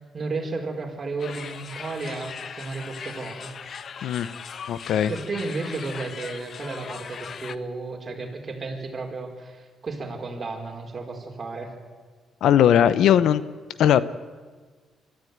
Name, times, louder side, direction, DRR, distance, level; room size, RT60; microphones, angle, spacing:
voice 1, 0.1-3.5 4.6-4.8 5.1-11.7, right 3 dB, 35° right, 1 dB, 4.6 m, -33 dB
sound 1, 1.2-7.6, left 6 dB, 50° left, 1.0 m, -39 dB
voice 2, 4.7-5.1 12.4-13.4 13.8-14.0, left 10 dB, 75° left, 15 dB, 0.8 m, -18 dB
23.5 x 14.0 x 9.5 m, 1.5 s
cardioid pair, 90°, 0 cm